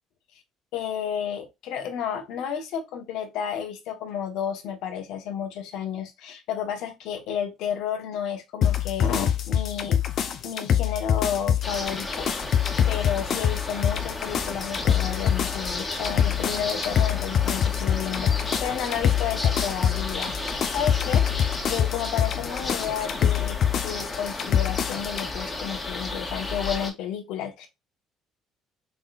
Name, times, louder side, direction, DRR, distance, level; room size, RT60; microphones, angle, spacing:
voice 1, 0.7-10.0 10.4-21.2 21.7-23.6 23.8-27.7, left 8 dB, 75° left, 1.2 m, -31 dB
sound 1, 8.6-25.3, left 9 dB, 55° left, 0.7 m, -25 dB
sound 2, 11.6-26.9, left 2 dB, 25° left, 1.6 m, -33 dB
4.0 x 3.9 x 2.5 m
supercardioid pair, 70°, 0 cm